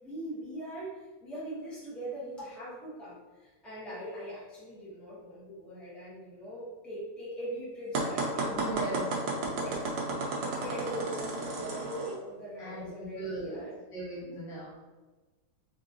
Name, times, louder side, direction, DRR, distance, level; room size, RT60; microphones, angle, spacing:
voice 1, 0.0-8.5 9.6-9.8 10.4-13.8, right 1 dB, ahead, -9 dB, 0.8 m, -41 dB
sound 1, 7.9-12.1, right 2 dB, 70° right, 1.2 m, -33 dB
voice 2, 8.5-9.1 12.6-13.6 13.9-14.7, right 2 dB, 60° left, -8 dB, 2.1 m, -38 dB
3.9 x 3.7 x 2.6 m, 1.2 s
omnidirectional pair, 2.4 m